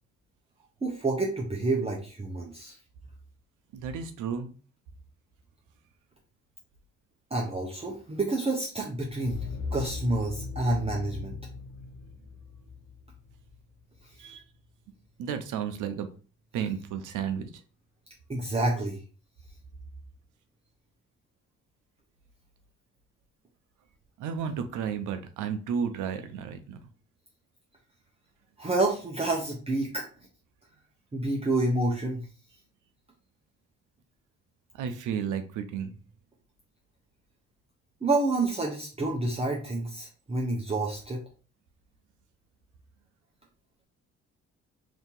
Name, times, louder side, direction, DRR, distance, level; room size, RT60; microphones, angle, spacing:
voice 1, 0.8-2.8 7.3-9.4 9.7-11.3 18.3-19.0 28.6-30.0 31.1-32.2 38.0-41.2, right 2 dB, 20° right, -2 dB, 0.7 m, -28 dB
voice 2, 3.7-4.5 14.2-14.4 15.2-16.1 16.5-17.6 24.2-26.8 34.7-35.9, right 7 dB, 85° right, 8 dB, 0.6 m, -32 dB
sound 1, 9.2-14.1, left 4 dB, 60° left, 0.7 m, -39 dB
2.9 x 2.7 x 3.7 m, 0.37 s
cardioid pair, 90°, 30 cm